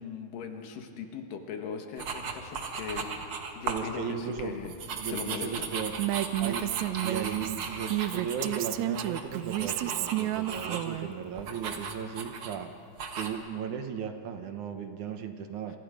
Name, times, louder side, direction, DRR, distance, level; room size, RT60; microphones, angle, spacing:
voice 1, 0.0-3.2 3.6-4.7 5.0-5.7, left 6 dB, 75° left, 4 dB, 3.1 m, -39 dB
sound 1, 2.0-3.9 4.3-11.0 11.4-12.6 13.0-13.3, right 5 dB, 50° right, 2.0 m, -37 dB
voice 2, 3.7-4.6 4.9-6.0 6.4-12.7 13.2-15.8, right 7 dB, 70° right, 7 dB, 2.3 m, -36 dB
Female speech woman speaking, 6.0-11.1, right 14 dB, 85° right, 1.6 m, -31 dB
28.0 x 26.5 x 5.1 m, 2.6 s
omnidirectional pair, 4.0 m